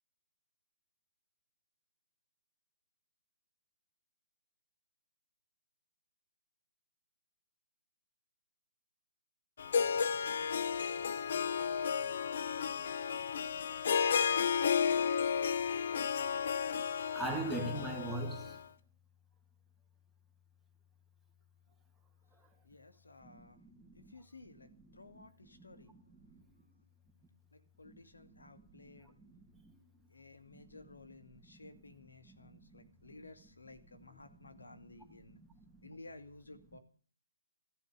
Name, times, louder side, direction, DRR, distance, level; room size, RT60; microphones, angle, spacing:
Harp, 9.6-18.6, left 7 dB, 55° left, 1.1 m, -33 dB
voice 1, 17.1-18.6 23.2-24.1 25.1-25.3 25.6-26.4 27.8-28.4 28.7-29.8 30.5-30.7 32.2-32.9 34.3-34.5 34.9-35.9, right 2 dB, ahead, 2.8 m, -43 dB
voice 2, 22.6-23.6 23.9-26.0 27.5-29.3 30.1-35.4 35.8-36.8, left 2 dB, 80° left, 2.3 m, -55 dB
15.0 x 13.5 x 6.8 m
figure-of-eight pair, 140°, 0 cm